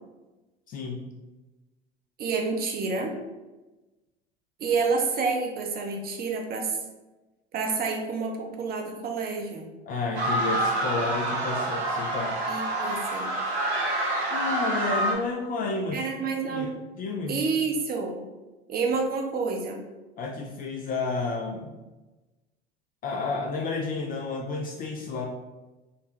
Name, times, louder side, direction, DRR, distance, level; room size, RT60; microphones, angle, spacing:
voice 1, 0.7-1.1 9.8-12.4 14.3-16.1 16.5-16.7 17.0-17.4 20.2-21.7 23.0-25.3, left 3 dB, 30° left, 1 dB, 0.3 m, -31 dB
voice 2, 2.2-3.1 4.6-6.8 7.5-9.7 12.5-13.3 15.9-16.8 17.3-18.2 18.7-19.8, right 4 dB, 30° right, 2 dB, 0.6 m, -28 dB
sound 1, 10.2-15.1, right 1 dB, 85° right, 0.8 m, -27 dB
3.8 x 2.1 x 2.9 m, 1.1 s
figure-of-eight pair, 75°, 32 cm